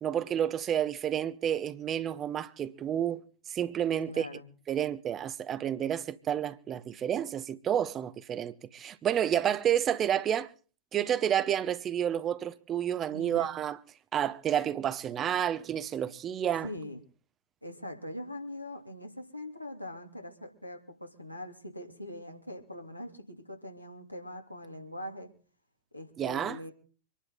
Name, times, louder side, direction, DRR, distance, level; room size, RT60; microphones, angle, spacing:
voice 1, 0.0-3.2 3.5-4.3 4.7-10.5 10.9-13.8 14.1-16.7 26.2-26.6, right 9 dB, 25° right, 0.9 m, -30 dB
voice 2, 4.1-4.4 13.1-13.5 16.6-17.0 17.6-25.3 25.9-26.7, left 1 dB, 90° left, 2.8 m, -42 dB
26.0 x 11.0 x 3.9 m
figure-of-eight pair, 90°, 0 cm